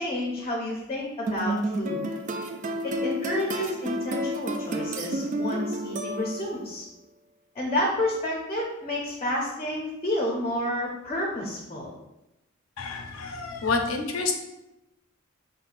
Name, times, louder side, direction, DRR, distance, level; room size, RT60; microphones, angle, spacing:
voice 1, 0.0-2.0 2.8-6.8 7.5-11.9, left 1 dB, 30° left, -2 dB, 0.6 m, -30 dB
sound 1, 1.3-6.7, right 1 dB, 40° right, 0.3 m, -30 dB
voice 2, 12.8-14.3, left 4 dB, 75° left, 4 dB, 0.5 m, -28 dB
5.6 x 2.1 x 2.5 m, 0.92 s
head